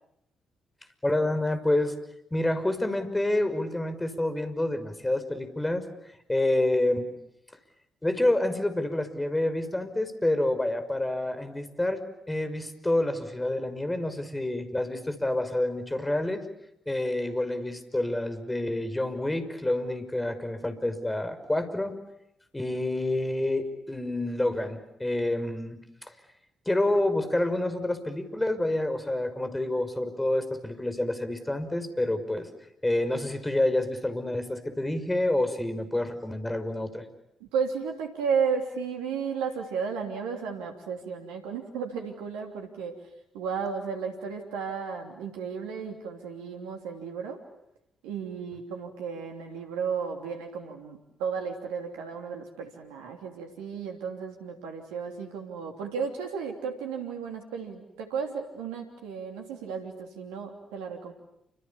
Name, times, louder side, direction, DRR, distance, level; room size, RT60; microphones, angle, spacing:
voice 1, 1.0-2.0 2.3-5.9 6.3-7.1 8.0-12.0 12.3-16.4 16.9-22.0 22.5-25.8 26.7-32.5 32.8-37.0, left 1 dB, 15° left, 9 dB, 5.8 m, -28 dB
voice 2, 37.4-43.0 43.3-47.4 48.0-61.1, right 6 dB, 75° right, 3 dB, 3.0 m, -33 dB
29.5 x 27.5 x 7.2 m, 0.79 s
hypercardioid pair, 40°, 0 cm